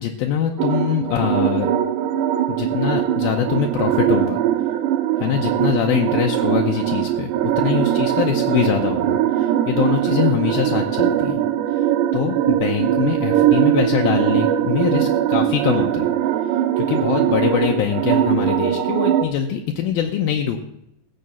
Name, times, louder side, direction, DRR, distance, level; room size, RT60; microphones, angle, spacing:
voice 1, 0.0-1.7 2.5-4.4 5.2-11.4 11.7-11.8 12.1-16.1 16.8-20.6, left 9 dB, 75° left, 3 dB, 2.3 m, -23 dB
sound 1, 0.6-19.3, right 11 dB, 80° right, 2.8 m, -21 dB
15.5 x 7.8 x 7.0 m, 0.87 s
omnidirectional pair, 5.0 m